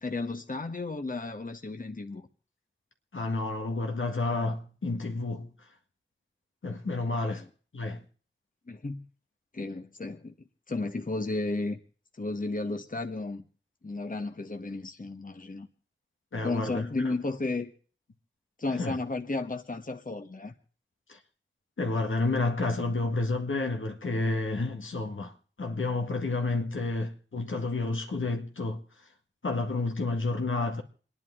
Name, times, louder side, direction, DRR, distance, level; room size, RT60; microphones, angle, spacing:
voice 1, 0.0-2.3 7.2-7.5 8.7-9.1 9.5-11.8 12.2-13.4 13.8-15.7 16.4-17.7 18.6-20.5, left 3 dB, 45° left, 1.3 m, -33 dB
voice 2, 3.1-5.5 6.6-7.4 7.7-8.0 16.3-16.8 18.8-19.0 21.1-21.2 21.8-25.3 25.6-28.8 29.4-30.8, left 3 dB, 85° left, 1.8 m, -30 dB
28.0 x 10.5 x 3.7 m
wide cardioid pair, 50°, 20 cm